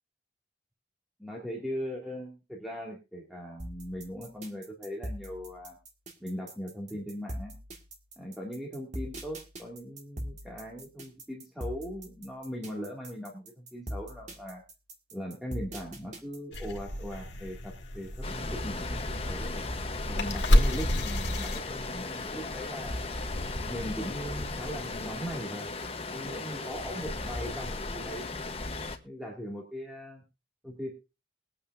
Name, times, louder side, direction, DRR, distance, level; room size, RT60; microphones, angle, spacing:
voice 1, 1.2-5.8 6.2-7.6 8.2-14.6 15.1-19.6 20.1-23.0 23.7-25.7 26.1-28.3 29.0-30.2 30.6-30.9, equal, ahead, -3 dB, 2.3 m, -39 dB
sound 1, 3.6-16.7, equal, 40° right, 1.9 m, -41 dB
sound 2, 16.5-22.2, left 1 dB, 90° left, 2.1 m, -30 dB
Stream, 18.2-29.0, left 2 dB, 30° left, 1.1 m, -35 dB
22.0 x 8.7 x 2.7 m, 0.28 s
head